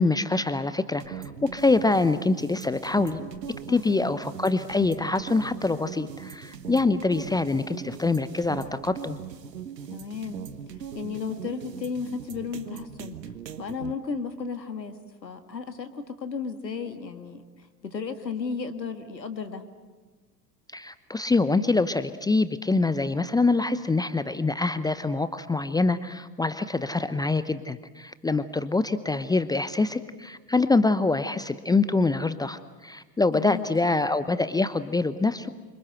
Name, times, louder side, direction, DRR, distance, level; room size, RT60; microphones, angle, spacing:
voice 1, 0.0-3.2 3.7-9.2 20.7-35.5, left 3 dB, 10° left, 13 dB, 0.8 m, -25 dB
sound 1, 1.0-13.9, right 8 dB, 75° right, 1.5 m, -40 dB
voice 2, 9.9-10.5 11.0-13.2 13.6-15.0 15.2-19.6 33.3-33.7, left 5 dB, 85° left, 8 dB, 1.9 m, -34 dB
28.5 x 25.5 x 7.9 m, 1.3 s
figure-of-eight pair, 80°, 49 cm